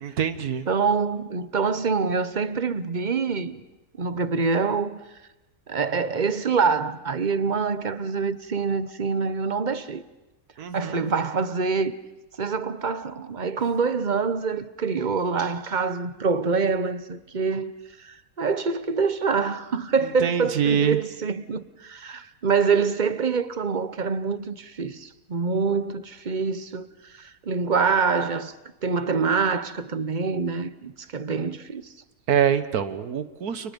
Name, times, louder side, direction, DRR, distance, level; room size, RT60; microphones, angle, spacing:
voice 1, 0.0-0.7 10.6-11.0 20.2-21.0 32.3-33.7, right 8 dB, 85° right, 1.7 m, -24 dB
voice 2, 0.7-3.6 4.0-5.0 5.7-10.0 10.7-11.9 12.4-17.7 18.0-28.5 28.8-31.8, right 5 dB, 35° right, 1.0 m, -25 dB
30.0 x 29.5 x 5.3 m
omnidirectional pair, 1.6 m